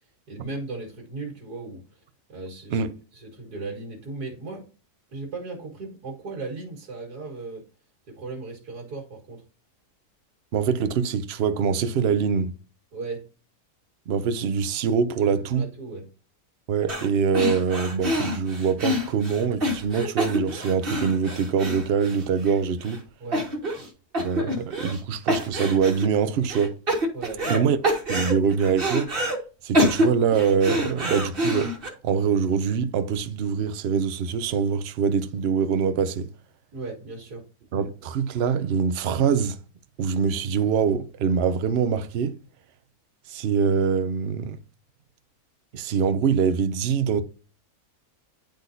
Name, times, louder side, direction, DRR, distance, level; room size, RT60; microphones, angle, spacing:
voice 1, 0.3-2.0 2.3-4.7 5.1-7.6 8.1-9.4 12.9-13.2 15.2-16.0 23.2-23.5 27.1-27.7 36.7-37.4, right 3 dB, 85° right, 2.2 m, -37 dB
voice 2, 10.5-12.5 14.1-15.7 16.7-23.0 24.2-26.7 27.5-27.8 28.1-29.1 29.6-31.7 32.0-36.3 37.7-39.6 40.0-42.4 43.3-44.6 45.7-47.2, right 6 dB, 55° right, 0.7 m, -24 dB
sound 1, 16.9-17.1 17.3-22.5 22.8-23.0 23.3-23.9 24.1-25.0 25.3-26.1 26.5-27.6 27.8-29.4 29.7-31.9, equal, 35° right, 1.8 m, -26 dB
10.5 x 3.9 x 2.7 m
omnidirectional pair, 1.6 m